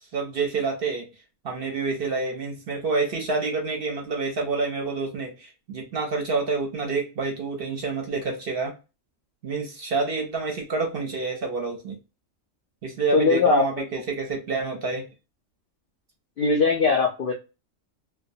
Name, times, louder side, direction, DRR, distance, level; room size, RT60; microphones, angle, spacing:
voice 1, 0.1-1.1 1.4-8.8 9.4-12.0 12.8-15.1, right 4 dB, 55° right, 0.7 m, -28 dB
voice 2, 13.1-13.6 16.4-17.3, left 4 dB, 70° left, 0.5 m, -20 dB
2.2 x 2.1 x 2.6 m
omnidirectional pair, 1.4 m